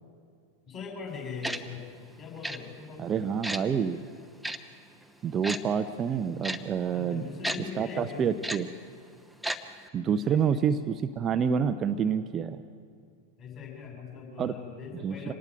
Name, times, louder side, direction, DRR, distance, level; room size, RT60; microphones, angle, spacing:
voice 1, 0.7-1.8 2.2-3.4 6.9-8.3 10.1-10.6 13.4-15.3, left 6 dB, 30° left, 0 dB, 7.3 m, -41 dB
Tick-tock, 1.4-1.6 2.4-2.6 3.4-3.6 4.4-4.6 5.4-5.6 6.4-6.6 7.4-7.6 8.4-8.6 9.4-9.6 9.9-10.0, right 1 dB, ahead, 1.0 m, -31 dB
voice 2, 3.0-4.0 5.2-7.2 7.8-8.7 9.9-12.6 14.4-14.5 15.0-15.3, right 7 dB, 25° right, 9 dB, 0.7 m, -28 dB
26.5 x 19.0 x 5.2 m, 2.3 s
figure-of-eight pair, 90°, 0 cm